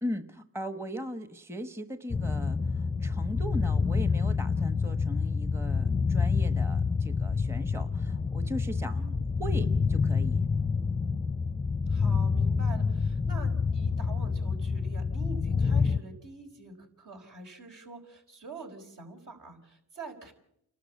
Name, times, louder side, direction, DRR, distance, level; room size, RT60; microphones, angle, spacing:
voice 1, 0.0-9.0 9.4-10.4, equal, 5° right, 10 dB, 1.2 m, -38 dB
sound 1, 2.1-16.0, left 5 dB, 20° left, 0.7 m, -27 dB
voice 2, 8.9-9.3 11.9-20.3, right 3 dB, 60° right, 3 dB, 5.2 m, -46 dB
29.5 x 12.5 x 8.4 m, 0.77 s
cardioid pair, 65°, 36 cm